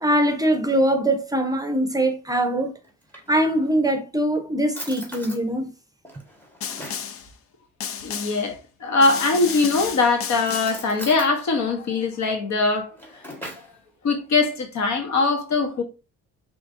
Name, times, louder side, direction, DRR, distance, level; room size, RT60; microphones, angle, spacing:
voice 1, 0.0-2.8 3.3-5.7, right 1 dB, 10° right, 0.8 m, -22 dB
Drawer open or close, 2.8-3.8 4.3-4.4 4.7-5.4 6.0-7.1 9.0-9.6 10.3-11.3 12.7-13.8, equal, 5° left, 1.6 m, -40 dB
Snare drum, 6.6-7.3 7.8-8.5 9.0-10.9, left 8 dB, 50° left, 0.6 m, -32 dB
voice 2, 8.0-12.9 14.0-15.8, left 3 dB, 65° left, 1.3 m, -22 dB
4.9 x 3.4 x 2.6 m
cardioid pair, 90°, 30 cm